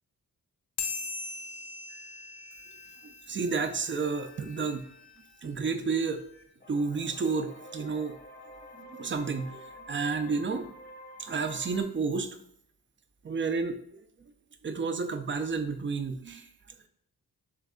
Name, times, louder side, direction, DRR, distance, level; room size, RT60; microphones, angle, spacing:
sound 1, 0.8-3.6, left 5 dB, 90° left, 0.6 m, -39 dB
sound 2, 1.9-11.8, left 2 dB, 25° left, 0.7 m, -51 dB
voice 1, 3.0-4.9 5.4-6.2 6.7-8.2 8.7-10.7 11.2-12.3 13.2-13.8 14.6-16.5, right 4 dB, 35° right, 9 dB, 0.5 m, -31 dB
3.5 x 3.1 x 3.7 m, 0.70 s
cardioid pair, 60°, 37 cm